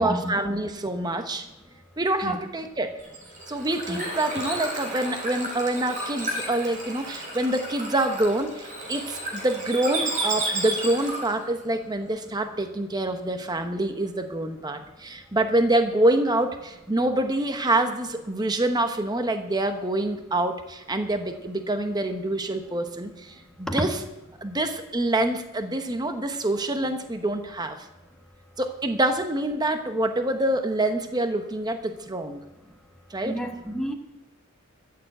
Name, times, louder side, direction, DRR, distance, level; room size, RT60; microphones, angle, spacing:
voice 1, 0.0-1.5 2.0-3.0 3.5-24.0 24.4-27.9 28.6-32.4 33.1-33.4, right 1 dB, 20° right, 7 dB, 0.9 m, -26 dB
Bird / Water, 3.0-11.4, right 2 dB, 35° right, 3.9 m, -32 dB
voice 2, 33.2-33.9, equal, 5° left, 3 dB, 1.2 m, -29 dB
13.5 x 6.8 x 7.8 m, 1.0 s
head